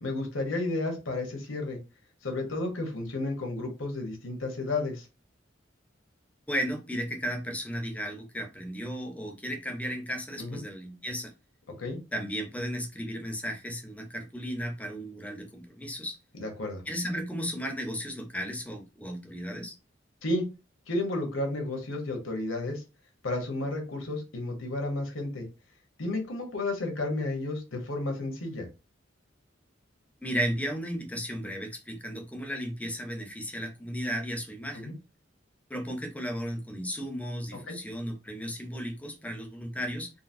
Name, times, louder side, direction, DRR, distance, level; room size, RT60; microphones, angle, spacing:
voice 1, 0.0-1.8 2.2-5.1 10.4-10.6 11.8-12.0 16.4-16.8 20.2-20.4 20.9-22.8 23.2-25.5 26.0-28.7 34.9-35.0 37.7-37.8, left 2 dB, 80° left, 1.0 m, -32 dB
voice 2, 6.5-11.3 12.1-16.2 16.9-19.7 30.2-34.9 35.7-40.1, equal, 5° left, 0.6 m, -34 dB
3.8 x 2.0 x 2.6 m
head